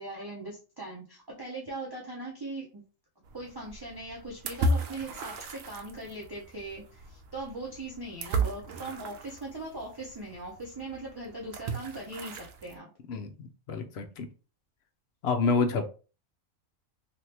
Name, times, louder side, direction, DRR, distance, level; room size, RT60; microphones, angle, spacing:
voice 1, 0.0-2.8 3.3-12.9, right 2 dB, 25° right, -3 dB, 0.5 m, -40 dB
sound 1, 3.2-12.8, right 2 dB, 75° right, 1.0 m, -35 dB
voice 2, 13.1-14.3 15.2-15.9, left 4 dB, 60° left, 7 dB, 0.7 m, -28 dB
3.4 x 2.5 x 2.9 m, 0.34 s
omnidirectional pair, 1.4 m